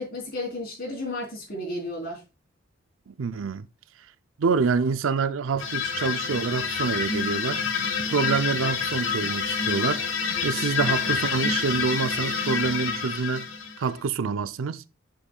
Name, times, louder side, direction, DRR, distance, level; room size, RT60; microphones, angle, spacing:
voice 1, 0.0-2.2, left 1 dB, 45° left, 3.7 m, -33 dB
voice 2, 3.1-3.7 4.4-7.6 8.0-10.1 10.4-13.5 13.8-14.8, right 5 dB, 75° right, 0.5 m, -26 dB
sound 1, 5.6-14.0, left 6 dB, 70° left, 1.3 m, -27 dB
7.2 x 7.0 x 2.3 m
head